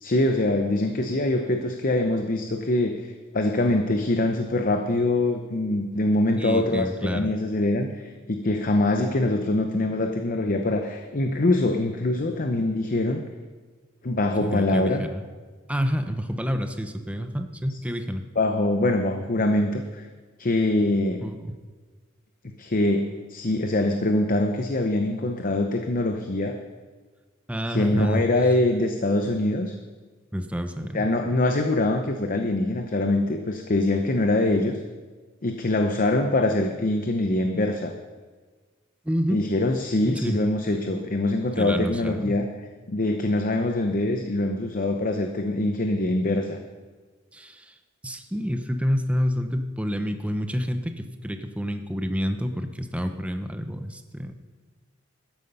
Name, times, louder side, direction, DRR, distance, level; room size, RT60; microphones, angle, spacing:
voice 1, 0.0-13.2 14.0-15.0 18.4-20.1 20.4-21.3 22.6-26.6 27.7-29.8 30.9-34.8 35.4-37.9 39.3-42.5 42.9-46.6, left 2 dB, 45° left, 5 dB, 0.8 m, -24 dB
voice 2, 6.4-7.3 14.4-15.2 15.7-18.2 21.2-21.3 27.5-28.2 30.3-31.0 39.0-39.4 40.0-40.4 41.6-42.3 47.3-47.7 48.0-54.3, equal, 5° right, 7 dB, 0.8 m, -28 dB
13.0 x 9.9 x 5.5 m, 1.4 s
head